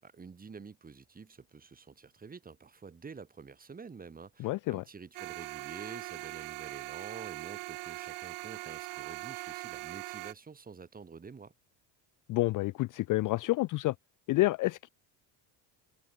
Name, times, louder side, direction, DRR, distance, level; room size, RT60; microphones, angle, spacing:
voice 1, 0.0-11.5, right 5 dB, 20° right, 7.2 m, -48 dB
voice 2, 4.4-4.8 12.3-14.0 14.3-14.9, left 19 dB, 45° left, 0.4 m, -29 dB
sound 1, 5.1-10.3, right 22 dB, 85° right, 5.7 m, -41 dB
cardioid pair, 180°, 47 cm